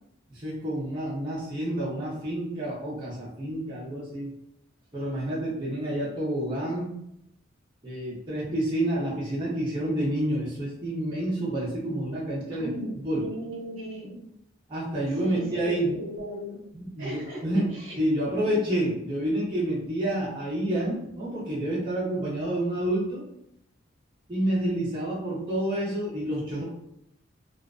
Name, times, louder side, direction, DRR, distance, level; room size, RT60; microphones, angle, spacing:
voice 1, 0.3-4.3 4.9-7.0 7.8-12.7 13.0-13.2 14.7-15.9 16.7-23.2 24.3-26.6, right 1 dB, 25° right, -9 dB, 0.6 m, -29 dB
voice 2, 12.5-14.2 15.2-16.6 17.0-17.4 17.7-18.0, equal, 80° right, -6 dB, 0.8 m, -37 dB
2.4 x 2.1 x 2.4 m, 0.79 s
head